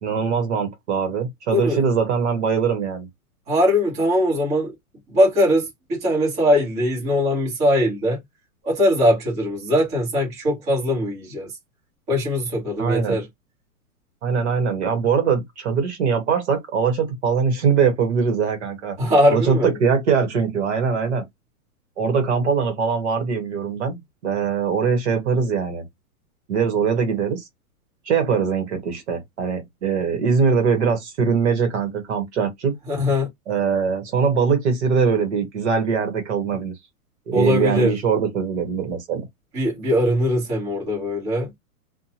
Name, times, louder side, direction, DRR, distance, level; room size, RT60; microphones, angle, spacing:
voice 1, 0.0-3.1 12.8-13.2 14.2-19.0 19.3-21.2 22.0-25.8 26.5-27.4 28.0-32.7 33.5-36.7 37.3-39.2, right 6 dB, 50° right, 1.1 m, -22 dB
voice 2, 1.5-1.8 3.5-4.7 5.1-8.2 8.6-11.5 12.1-13.2 19.0-19.8 32.9-33.3 37.3-37.9 39.5-41.5, equal, 15° right, 1.1 m, -21 dB
2.6 x 2.2 x 2.8 m
hypercardioid pair, 165°, 45 cm